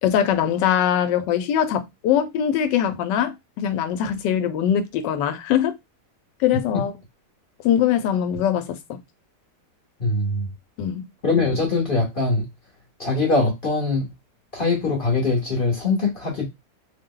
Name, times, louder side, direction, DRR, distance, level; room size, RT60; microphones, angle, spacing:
voice 1, 0.0-5.8 6.4-6.9 7.6-9.0 10.8-11.0, left 9 dB, 85° left, 1.2 m, -22 dB
voice 2, 10.0-10.5 11.2-12.5 13.0-14.1 14.5-16.5, left 3 dB, 40° left, 0.8 m, -22 dB
2.9 x 2.1 x 3.6 m
omnidirectional pair, 1.8 m